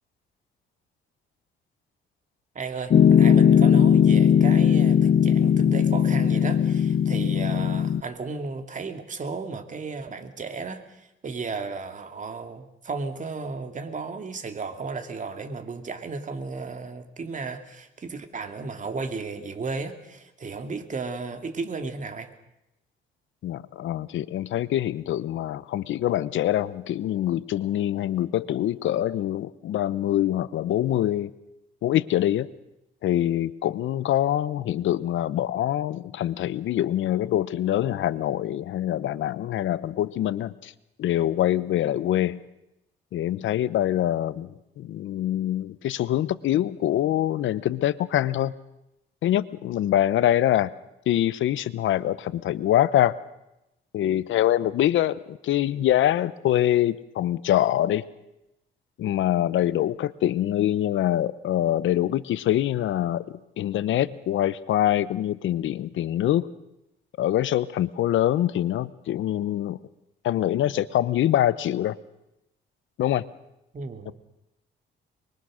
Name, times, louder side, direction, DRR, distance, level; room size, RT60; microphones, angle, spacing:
voice 1, 2.5-22.3 73.7-74.1, right 4 dB, 40° right, 6 dB, 2.7 m, -34 dB
Piano, 2.9-8.0, left 8 dB, 45° left, 0.7 m, -18 dB
voice 2, 23.4-31.3 31.8-32.5 33.0-40.7 41.0-42.4 43.1-48.5 49.2-50.7 51.1-53.2 53.9-58.0 59.0-66.5 67.2-69.8 70.2-72.0 73.0-73.2 74.1-74.2, left 12 dB, 75° left, 17 dB, 1.0 m, -24 dB
24.5 x 22.0 x 6.5 m, 0.90 s
cardioid pair, 90°, 20 cm